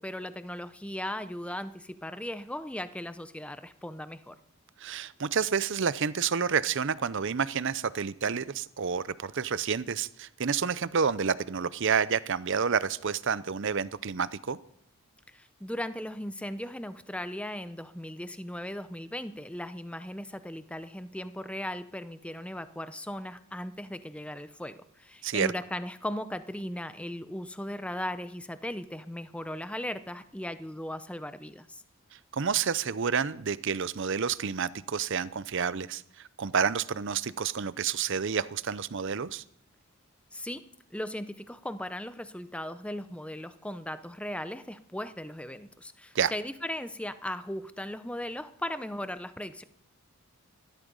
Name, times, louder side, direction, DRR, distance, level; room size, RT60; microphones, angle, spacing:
voice 1, 0.0-4.3 15.3-31.8 40.3-40.6 40.9-49.6, left 1 dB, 5° left, 12 dB, 0.6 m, -37 dB
voice 2, 4.8-14.6 25.2-25.5 32.3-39.4 46.1-46.3, right 6 dB, 55° right, 17 dB, 0.6 m, -29 dB
16.0 x 12.5 x 5.3 m, 0.66 s
head